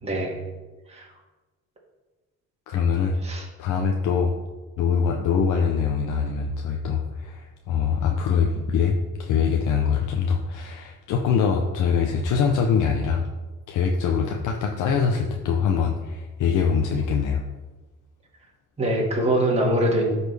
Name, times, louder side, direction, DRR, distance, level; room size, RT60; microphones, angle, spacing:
voice 1, 0.0-0.4 0.9-1.1 3.2-3.5 18.8-20.1, right 1 dB, 20° right, -3 dB, 1.8 m, -23 dB
voice 2, 2.7-3.2 3.6-4.3 4.8-13.3 13.7-17.4, left 6 dB, 80° left, 1 dB, 0.7 m, -23 dB
12.0 x 4.3 x 3.3 m, 1.2 s
cardioid pair, 90°, 30 cm